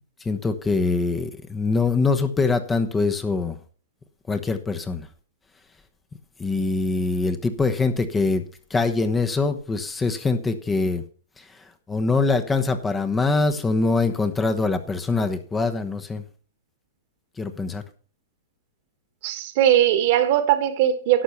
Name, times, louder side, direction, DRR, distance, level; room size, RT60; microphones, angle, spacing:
voice 1, 0.2-3.6 4.3-5.1 6.4-8.4 8.7-11.0 11.4-11.5 11.9-16.2 17.4-17.8, left 3 dB, 15° left, 1.1 m, -23 dB
voice 2, 19.2-21.2, right 11 dB, 50° right, 1.6 m, -19 dB
11.5 x 6.9 x 5.8 m
hypercardioid pair, 110°, 0 cm